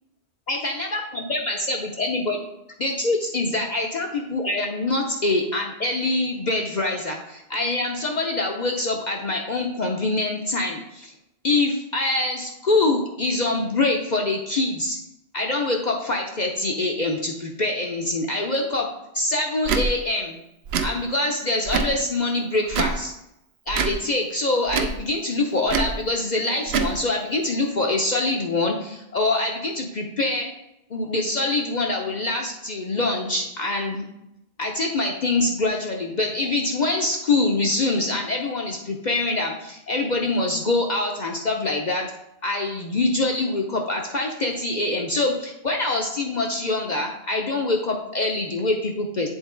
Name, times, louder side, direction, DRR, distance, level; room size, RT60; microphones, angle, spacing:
voice 1, 0.5-2.4 2.8-11.1 11.4-15.0 15.3-18.9 19.1-20.4 20.8-23.1 23.7-30.5 30.9-34.0 34.6-42.1 42.4-49.3, left 2 dB, 45° left, 1 dB, 0.7 m, -24 dB
Tick / Tick-tock, 19.6-19.9 20.7-20.9 21.7-22.0 22.7-23.0 23.7-24.0 24.7-25.0 25.7-25.9 26.7-26.9, right 5 dB, 65° right, 0.8 m, -24 dB
8.0 x 4.0 x 3.8 m, 0.84 s
omnidirectional pair, 1.2 m